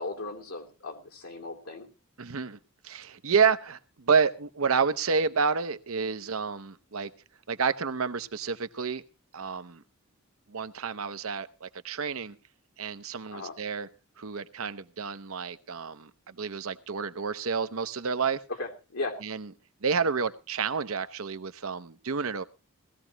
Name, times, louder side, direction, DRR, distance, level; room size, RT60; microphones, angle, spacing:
voice 1, 0.0-1.9 13.3-13.6 18.6-19.2, left 3 dB, 85° left, 1 dB, 2.9 m, -37 dB
voice 2, 2.2-2.6 2.8-7.1 7.5-9.0 9.3-9.8 10.5-12.4 12.8-13.9 14.2-18.4 19.2-19.5 19.8-22.4, right 5 dB, 70° right, 11 dB, 0.8 m, -29 dB
18.0 x 15.0 x 2.9 m, 0.31 s
head